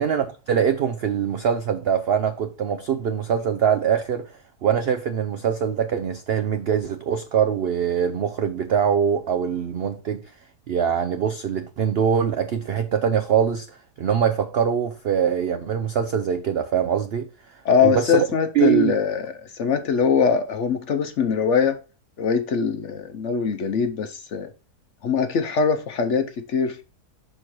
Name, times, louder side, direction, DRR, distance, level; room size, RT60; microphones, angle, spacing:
voice 1, 0.0-4.2 4.6-10.2 10.7-13.7 14.0-17.3 17.8-18.3 18.5-18.9, right 8 dB, 70° right, 0.5 m, -23 dB
voice 2, 17.6-21.8 22.2-24.5 25.0-26.8, left 6 dB, 60° left, 0.8 m, -22 dB
6.2 x 4.4 x 4.4 m
omnidirectional pair, 1.7 m